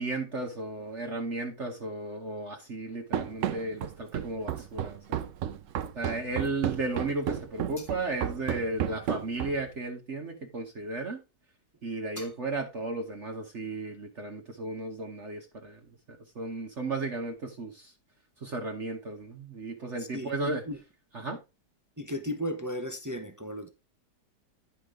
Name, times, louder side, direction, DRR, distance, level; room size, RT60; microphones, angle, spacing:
voice 1, 0.0-5.2 5.9-11.2 11.8-15.8 16.1-17.9 18.4-20.6 21.1-21.4, right 2 dB, 45° right, 1.4 m, -34 dB
Run, 3.1-9.8, right 10 dB, 60° right, 0.8 m, -33 dB
voice 2, 20.0-20.8 22.0-23.7, left 1 dB, 20° right, 0.4 m, -35 dB
10.0 x 5.7 x 3.7 m
omnidirectional pair, 1.9 m